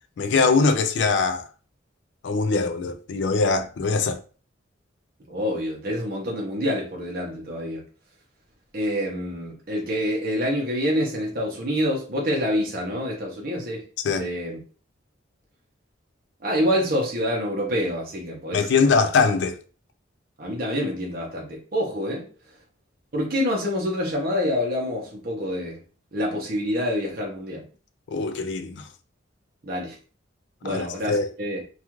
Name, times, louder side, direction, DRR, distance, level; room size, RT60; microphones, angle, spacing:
voice 1, 0.2-1.4 2.2-4.2 14.0-14.3 18.5-19.6 28.1-28.8 30.6-31.3, left 4 dB, 65° left, 0.3 m, -22 dB
voice 2, 5.3-7.8 8.7-13.9 14.1-14.6 16.4-18.7 19.0-19.1 20.4-22.3 23.1-25.8 26.1-27.6 29.6-30.0 30.6-31.6, equal, 50° right, 0.7 m, -27 dB
2.3 x 2.3 x 3.0 m
head